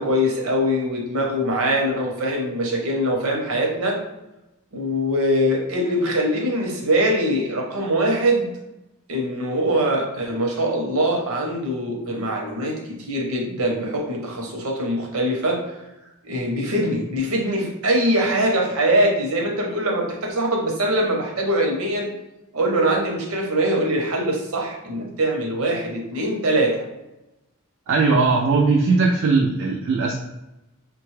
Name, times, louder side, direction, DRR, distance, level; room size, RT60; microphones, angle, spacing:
voice 1, 0.0-4.0 4.7-8.5 9.1-15.8 16.2-22.1 22.5-26.8, right 1 dB, 70° right, 0 dB, 0.8 m, -22 dB
voice 2, 27.9-30.2, right 4 dB, 55° right, -1 dB, 0.3 m, -19 dB
3.3 x 2.2 x 3.1 m, 0.96 s
head